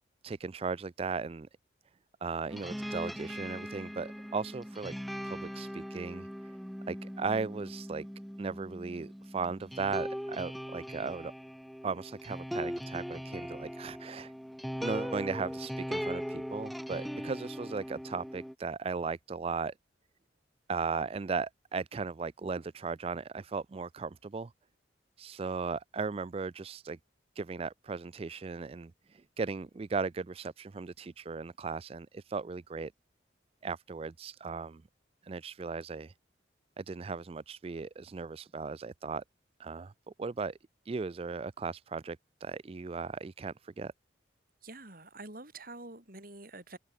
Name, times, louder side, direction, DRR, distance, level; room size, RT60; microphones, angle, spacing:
voice 1, 0.2-1.5 2.2-5.0 5.2-6.5 6.9-8.1 8.4-11.3 11.8-14.3 14.8-19.7 20.7-24.5 25.2-27.0 27.4-32.9 33.6-34.8 35.2-36.1 36.8-39.2 39.6-40.6 40.8-43.9, right 4 dB, 30° right, 0.3 m, -37 dB
sound 1, 2.5-18.5, equal, ahead, 2.2 m, -40 dB
voice 2, 44.6-46.8, right 2 dB, 50° right, 5.7 m, -47 dB
open air
head